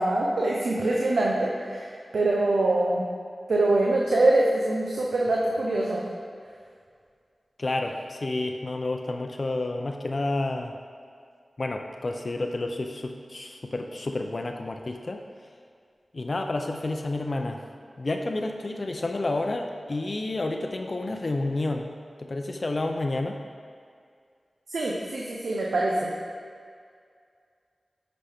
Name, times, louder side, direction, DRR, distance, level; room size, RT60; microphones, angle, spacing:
voice 1, 0.0-3.0 3.5-6.0 24.7-26.1, right 2 dB, 85° right, -3 dB, 0.7 m, -24 dB
voice 2, 7.6-10.7 11.6-15.2 16.1-17.6 18.0-21.9 22.2-23.4, left 2 dB, 50° left, 4 dB, 0.5 m, -30 dB
9.9 x 5.1 x 3.5 m, 2.2 s
wide cardioid pair, 60°, 0 cm